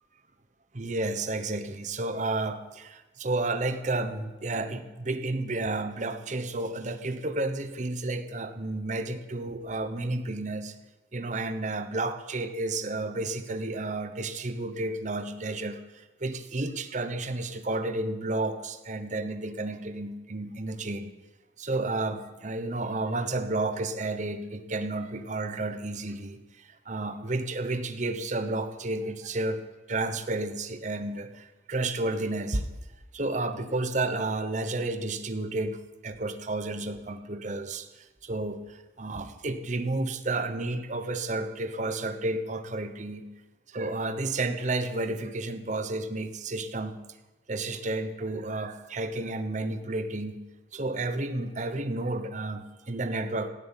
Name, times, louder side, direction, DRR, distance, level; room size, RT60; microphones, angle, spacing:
voice 1, 0.7-10.7 11.1-21.1 21.6-29.6 29.9-32.7 33.1-43.3 43.7-47.0 47.5-50.4 50.7-53.5, right 2 dB, 40° right, 9 dB, 1.0 m, -31 dB
16.0 x 7.9 x 9.1 m, 1.1 s
head